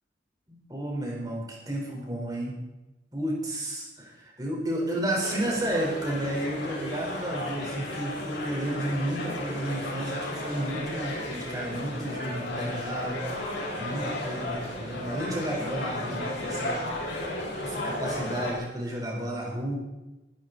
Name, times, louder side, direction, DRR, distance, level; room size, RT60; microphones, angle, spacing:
voice 1, 0.5-2.5 3.1-13.2 13.8-16.8 17.6-19.8, right 1 dB, 20° right, -2 dB, 4.3 m, -32 dB
sound 1, 5.2-18.5, left 1 dB, 80° left, 4.6 m, -34 dB
21.5 x 11.5 x 4.1 m, 1.0 s
head